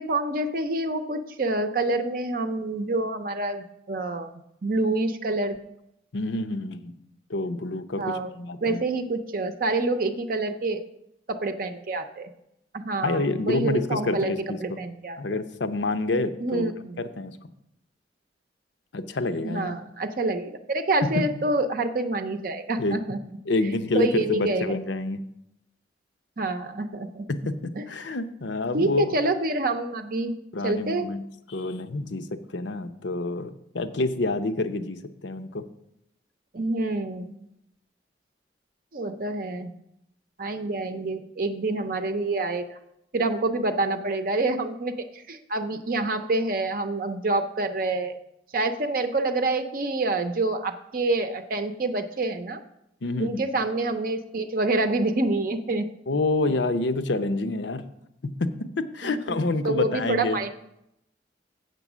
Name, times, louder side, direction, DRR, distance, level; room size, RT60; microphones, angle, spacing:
voice 1, 0.0-4.3 4.6-5.6 8.0-8.3 8.6-10.8 11.3-12.3 12.7-15.2 16.4-17.0 19.4-23.2 23.6-24.7 26.4-27.3 27.8-27.9 28.7-30.3 30.6-31.1 36.5-37.3 38.9-39.7 40.4-42.7 43.1-48.1 48.5-52.6 53.2-55.9 56.5-56.6 59.0-59.2 59.6-60.5, right 2 dB, 50° right, 7 dB, 0.6 m, -27 dB
voice 2, 6.1-6.9 7.3-8.8 13.0-14.8 15.2-16.7 17.0-17.4 18.9-19.7 21.2-21.3 22.8-23.0 23.5-25.2 27.3-29.1 30.5-31.2 31.5-32.3 32.5-35.6 53.0-53.4 56.1-57.8 58.2-60.4, left 2 dB, 75° left, 9 dB, 0.7 m, -28 dB
7.9 x 6.8 x 6.1 m, 0.82 s
head